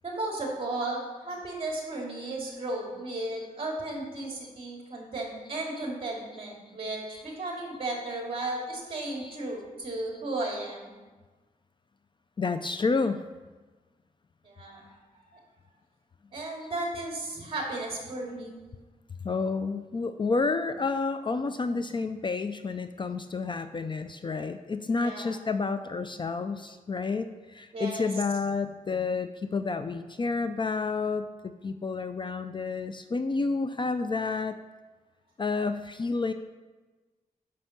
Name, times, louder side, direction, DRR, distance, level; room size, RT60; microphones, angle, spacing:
voice 1, 0.0-10.9 14.4-15.4 16.3-18.6 25.0-25.4 27.7-28.1, right 2 dB, 35° right, -1 dB, 2.7 m, -35 dB
voice 2, 12.4-13.3 19.2-34.6 35.4-36.3, left 4 dB, 35° left, 10 dB, 0.4 m, -30 dB
9.9 x 6.3 x 5.9 m, 1.3 s
wide cardioid pair, 145°, 15 cm